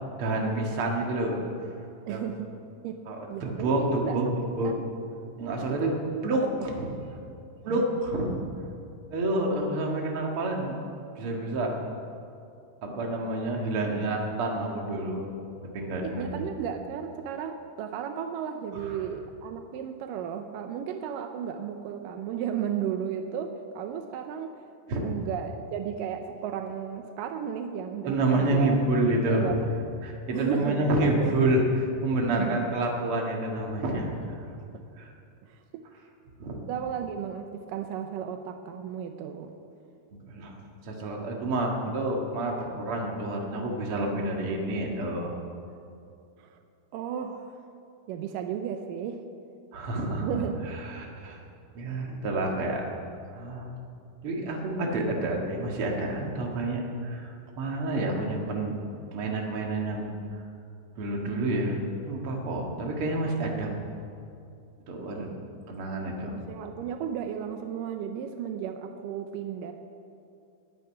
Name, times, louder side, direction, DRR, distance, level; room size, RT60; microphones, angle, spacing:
voice 1, 0.2-1.4 2.1-2.2 3.1-4.3 4.6-4.7 5.4-5.9 6.2-6.9 7.6-8.4 9.1-10.7 11.2-11.8 12.8-15.3 15.6-16.4 18.8-19.0 24.9-25.0 28.0-29.5 30.0-34.4 35.0-35.1 36.4-36.6 40.3-40.5 40.8-45.3 49.7-50.3 50.9-51.4 51.7-52.8 53.3-53.7 54.2-58.8 59.1-60.1 61.0-61.8 62.0-63.7 64.9-65.3 65.7-66.4, right 2 dB, 45° right, 0 dB, 2.4 m, -28 dB
voice 2, 2.1-2.5 2.8-3.0 3.3-4.2 4.6-4.8 5.6-6.3 6.8-6.9 7.7-7.8 16.0-24.6 25.0-28.8 29.3-29.7 30.3-31.3 32.3-32.7 34.7-34.8 35.4-35.8 36.6-39.5 41.9-42.0 46.4-46.6 46.9-47.6 48.1-49.2 50.2-50.6 65.2-65.3 66.2-69.7, right 8 dB, 85° right, 6 dB, 2.3 m, -34 dB
12.0 x 9.4 x 9.7 m, 2.5 s
omnidirectional pair, 3.8 m